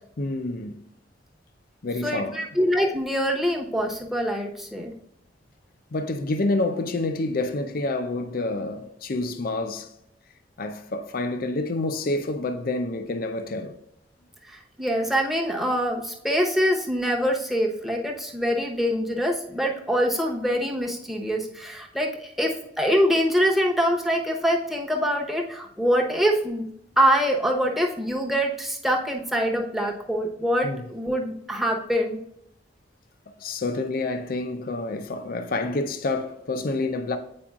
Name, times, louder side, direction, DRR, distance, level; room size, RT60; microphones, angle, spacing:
voice 1, 0.2-0.8 1.8-2.4 5.9-9.9 10.6-13.8 30.6-30.8 33.4-37.2, left 2 dB, 50° left, 0.5 m, -28 dB
voice 2, 2.0-4.9 14.4-26.7 27.0-32.2, equal, ahead, 0.9 m, -24 dB
8.6 x 4.8 x 2.4 m
head